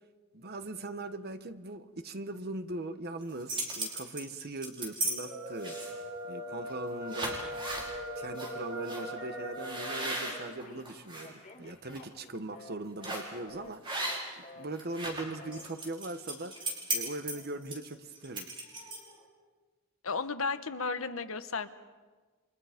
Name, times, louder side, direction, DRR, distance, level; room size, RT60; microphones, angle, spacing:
voice 1, 0.3-7.5 8.2-18.5, right 2 dB, 50° right, 10 dB, 1.2 m, -40 dB
sound 1, 3.2-5.1 5.6-6.1 6.6-6.8 7.1-7.9 8.4-8.5 8.9-9.0 9.6-11.3 11.7-12.0 13.0-13.3 13.8-14.4 14.7-19.2, right 2 dB, 25° right, 5.6 m, -36 dB
sound 2, 5.2-10.5, equal, 65° right, 7.5 m, -40 dB
Telephone, 7.0-7.6 7.9-9.6 9.9-12.7 13.0-13.2 13.5-13.7 14.0-14.2 14.4-14.6 14.9-15.1 15.4-15.6, left 2 dB, 35° left, 2.3 m, -50 dB
voice 2, 20.0-21.7, left 4 dB, 70° left, 10 dB, 1.2 m, -33 dB
29.5 x 26.0 x 5.2 m, 1.3 s
head